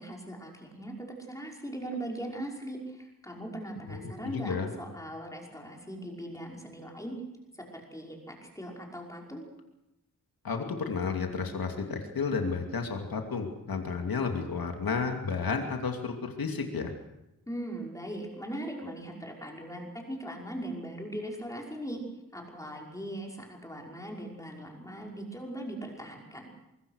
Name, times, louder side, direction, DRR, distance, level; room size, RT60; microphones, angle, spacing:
voice 1, 0.0-7.1 7.5-9.4 17.5-22.0 22.3-26.5, right 1 dB, 10° left, 0 dB, 5.4 m, -40 dB
voice 2, 3.9-4.7 10.4-16.9, left 5 dB, 80° left, 4 dB, 2.8 m, -32 dB
24.0 x 22.5 x 6.5 m, 0.90 s
wide cardioid pair, 140°, 35 cm